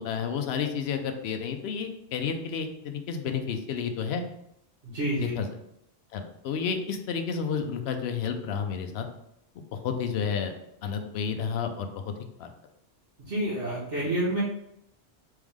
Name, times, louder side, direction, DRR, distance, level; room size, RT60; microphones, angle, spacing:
voice 1, 0.0-4.2 5.2-5.5 6.1-9.1 9.6-10.5 10.8-12.1 12.4-12.5, left 6 dB, 70° left, 6 dB, 0.8 m, -31 dB
voice 2, 4.8-5.3 13.3-14.4, right 1 dB, 70° right, -11 dB, 1.6 m, -28 dB
3.6 x 3.3 x 3.5 m, 0.79 s
omnidirectional pair, 1.2 m